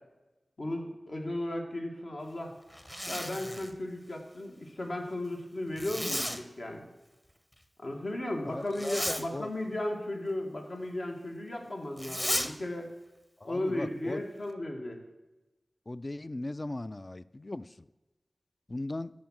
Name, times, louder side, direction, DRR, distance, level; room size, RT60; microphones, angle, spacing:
voice 1, 0.6-2.5 3.1-6.9 7.8-12.9 13.4-15.0, left 1 dB, 60° left, 1 dB, 2.0 m, -35 dB
Zipper (clothing), 2.7-3.8 5.8-6.4 8.7-9.3 12.0-12.5, equal, 15° left, 1.0 m, -34 dB
voice 2, 8.5-9.5 13.4-14.2 15.9-17.7 18.7-19.1, left 2 dB, 35° left, 16 dB, 0.3 m, -38 dB
13.0 x 5.3 x 7.6 m, 1.1 s
wide cardioid pair, 70°, 0 cm